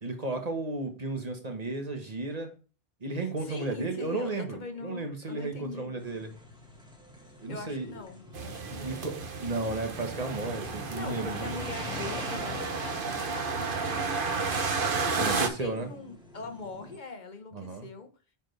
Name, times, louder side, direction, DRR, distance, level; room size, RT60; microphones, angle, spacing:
voice 1, 0.0-2.5 3.0-6.3 7.4-7.9 8.8-11.5 15.1-15.9 17.5-17.9, right 2 dB, 40° right, 1.5 m, -34 dB
voice 2, 3.1-5.9 7.5-9.1 10.9-14.1 14.8-15.3 15.6-18.1, left 3 dB, 50° left, 1.2 m, -42 dB
sound 1, 6.0-17.0, left 1 dB, 5° right, 1.6 m, -45 dB
sound 2, 8.3-15.5, right 4 dB, 60° right, 1.1 m, -32 dB
8.7 x 4.7 x 3.3 m
omnidirectional pair, 1.0 m